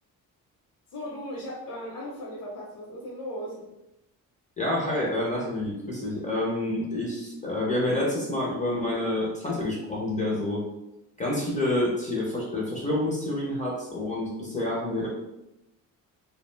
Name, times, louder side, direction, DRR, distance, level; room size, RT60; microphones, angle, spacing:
voice 1, 0.9-3.7, equal, 70° left, -5 dB, 0.7 m, -37 dB
voice 2, 4.6-10.6 11.2-15.1, left 1 dB, 20° left, -4 dB, 0.4 m, -28 dB
2.4 x 2.1 x 3.0 m, 0.89 s
cardioid pair, 170°, 35 cm